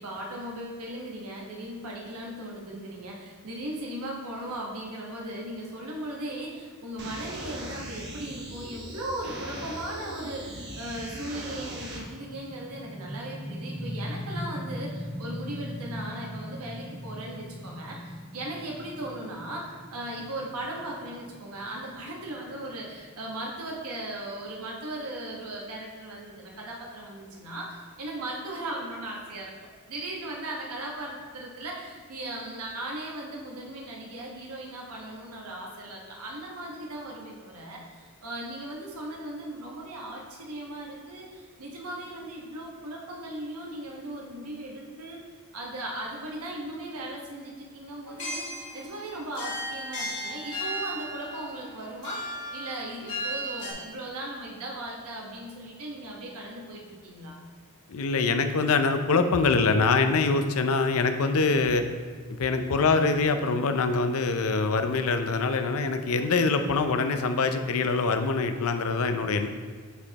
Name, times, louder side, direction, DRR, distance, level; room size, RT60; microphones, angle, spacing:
voice 1, 0.0-45.2 45.5-57.4, right 1 dB, 90° right, -1 dB, 1.2 m, -38 dB
sound 1, 7.0-12.0, equal, 50° right, 1.1 m, -39 dB
sound 2, 12.0-23.5, equal, ahead, 0.4 m, -39 dB
sound 3, 48.0-53.7, equal, 55° left, 2.0 m, -35 dB
voice 2, 57.9-61.8 62.4-69.5, left 4 dB, 70° left, 8 dB, 0.5 m, -24 dB
8.1 x 5.1 x 2.9 m, 1.5 s
head